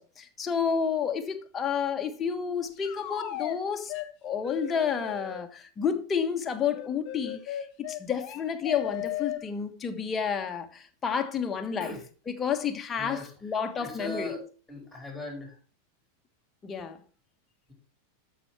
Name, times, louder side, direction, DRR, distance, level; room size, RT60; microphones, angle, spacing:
voice 1, 0.0-3.9 4.2-11.9 12.3-14.4 16.6-17.0, left 7 dB, 20° left, 1.4 m, -30 dB
sound 1, 2.8-3.6 3.9-4.1 4.4-5.4 6.7-9.4, left 13 dB, 40° left, 1.6 m, -36 dB
voice 2, 13.0-13.3 13.8-14.4 14.7-15.6, left 1 dB, 5° left, 4.8 m, -39 dB
12.5 x 6.0 x 4.5 m
figure-of-eight pair, 90°, 0 cm